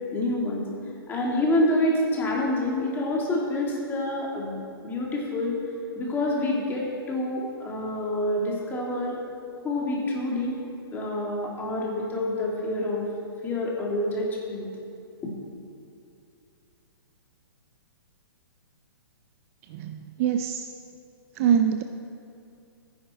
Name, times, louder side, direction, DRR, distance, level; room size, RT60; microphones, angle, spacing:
voice 1, 0.1-0.6 1.1-5.6 5.9-9.2 9.6-10.6 10.9-13.0 13.4-14.7, left 1 dB, 15° left, -2 dB, 2.2 m, -27 dB
voice 2, 19.7-20.7 21.3-21.8, right 8 dB, 35° right, 7 dB, 0.5 m, -24 dB
14.5 x 10.0 x 4.2 m, 2.5 s
hypercardioid pair, 145°, 13 cm